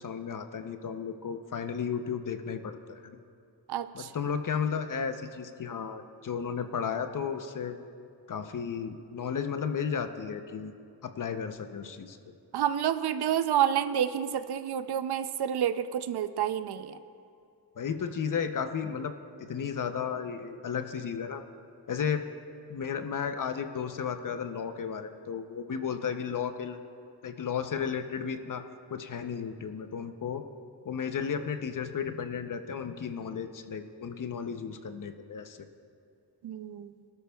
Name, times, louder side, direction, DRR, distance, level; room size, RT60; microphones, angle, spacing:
voice 1, 0.0-3.2 3.9-7.8 8.3-10.7 11.0-12.2 17.8-19.1 19.5-21.4 21.9-22.2 22.7-26.8 27.2-28.6 28.9-30.4 30.8-35.6, left 7 dB, 50° left, 8 dB, 0.7 m, -34 dB
voice 2, 3.7-4.1 12.5-17.0 36.4-36.9, right 10 dB, 70° right, 12 dB, 0.6 m, -29 dB
19.0 x 12.5 x 2.3 m, 2.6 s
wide cardioid pair, 110°, 40 cm